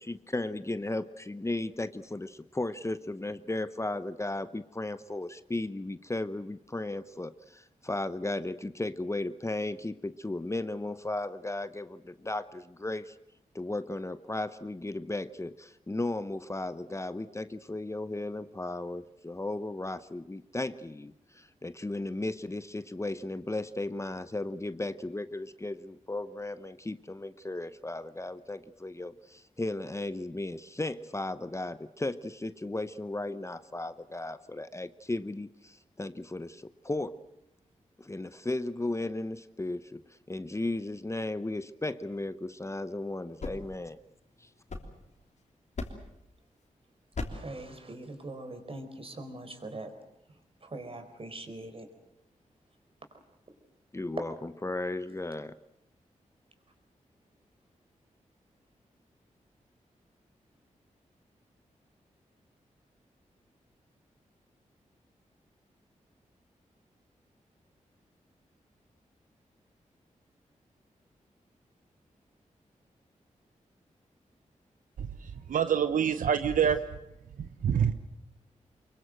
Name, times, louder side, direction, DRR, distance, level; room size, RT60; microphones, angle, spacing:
voice 1, 0.0-13.2 13.5-37.2 38.0-44.0 44.4-44.5 53.9-55.5, left 2 dB, 20° left, 13 dB, 0.9 m, -35 dB
sound 1, 43.2-45.3 45.7-46.2 47.1-47.6, left 3 dB, 60° left, 3.3 m, -40 dB
voice 2, 47.3-49.9 50.3-51.9, right 2 dB, 45° right, 6 dB, 4.6 m, -42 dB
voice 3, 75.5-76.8 77.4-77.9, right 8 dB, 85° right, 10 dB, 0.9 m, -26 dB
24.0 x 22.5 x 7.8 m, 0.83 s
cardioid pair, 65°, 13 cm